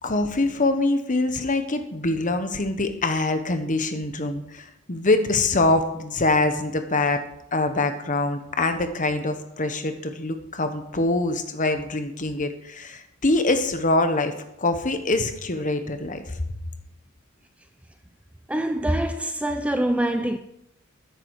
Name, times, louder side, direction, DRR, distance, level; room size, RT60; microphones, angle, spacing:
voice 1, 0.0-7.2 7.5-14.3 14.6-16.2, left 2 dB, 35° left, 1.2 m, -24 dB
voice 2, 18.5-20.4, right 1 dB, 5° right, 0.5 m, -24 dB
14.0 x 9.8 x 4.9 m
head